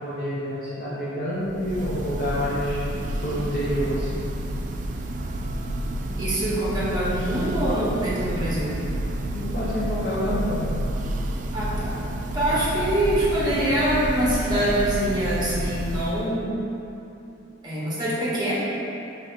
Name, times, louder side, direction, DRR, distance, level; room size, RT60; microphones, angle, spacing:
voice 1, 0.0-2.8 3.2-4.1 9.3-10.7, equal, 50° left, -9 dB, 0.7 m, -28 dB
Church bell, 1.4-16.4, right 1 dB, 40° right, 0.3 m, -29 dB
voice 2, 6.2-8.8 11.5-16.6 17.6-18.6, right 1 dB, 20° right, -8 dB, 1.1 m, -25 dB
3.9 x 3.4 x 4.0 m, 2.9 s
head